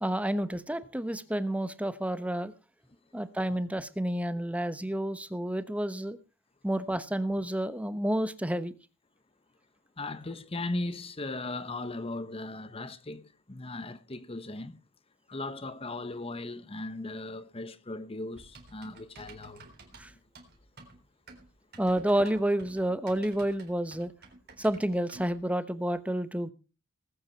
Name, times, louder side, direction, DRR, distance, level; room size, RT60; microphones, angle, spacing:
voice 1, 0.0-2.5 3.1-6.2 6.6-8.7 20.0-20.1 21.8-24.1 24.6-26.5, right 1 dB, 5° right, 1.0 m, -30 dB
voice 2, 10.0-14.8 15.3-19.7, left 2 dB, 30° left, 1.0 m, -37 dB
Typing, 18.3-25.4, right 3 dB, 55° right, 3.8 m, -52 dB
19.5 x 8.8 x 4.5 m
head